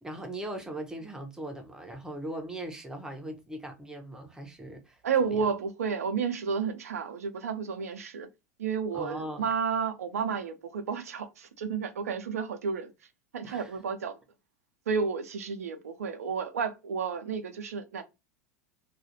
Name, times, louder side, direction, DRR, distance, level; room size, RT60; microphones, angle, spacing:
voice 1, 0.0-5.0 5.3-5.5 8.9-9.5 13.4-13.8, right 1 dB, 5° right, 0.7 m, -39 dB
voice 2, 5.0-8.3 8.6-12.9 13.3-14.2 14.9-18.0, right 6 dB, 75° right, 0.5 m, -31 dB
2.4 x 2.4 x 2.7 m
figure-of-eight pair, 85°, 8 cm